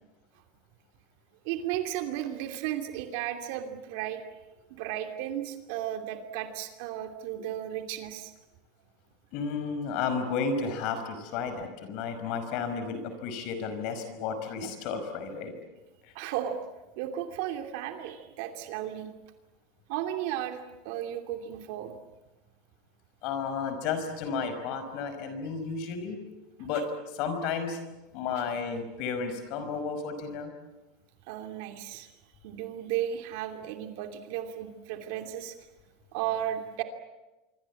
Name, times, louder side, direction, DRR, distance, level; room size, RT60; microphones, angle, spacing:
voice 1, 1.4-4.2 4.7-8.3 16.1-16.6 17.0-19.1 19.9-22.0 26.6-26.7 31.3-32.1 32.4-35.5 36.1-36.8, right 11 dB, 60° right, 6 dB, 2.8 m, -34 dB
voice 2, 9.3-15.5 16.0-16.1 23.2-26.2 26.6-27.8 28.1-30.5, left 5 dB, 45° left, 8 dB, 5.4 m, -32 dB
26.0 x 25.0 x 8.5 m, 1.1 s
supercardioid pair, 170°, 0 cm